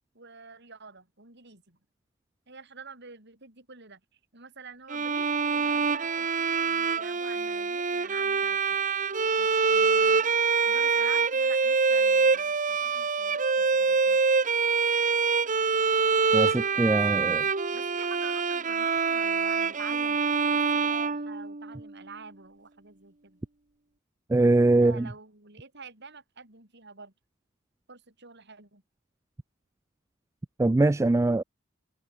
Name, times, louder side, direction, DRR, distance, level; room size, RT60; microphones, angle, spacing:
voice 1, 0.1-1.8 2.5-4.0 4.3-8.6 9.4-10.3 10.7-14.2 16.9-17.4 17.7-20.2 20.5-23.4 24.5-27.1 27.9-28.8, right 4 dB, 55° right, 7.8 m, -48 dB
Bowed string instrument, 4.9-21.9, right 5 dB, 40° right, 1.2 m, -25 dB
voice 2, 16.3-17.4 24.3-25.1 30.6-31.4, right 2 dB, 15° right, 0.3 m, -22 dB
head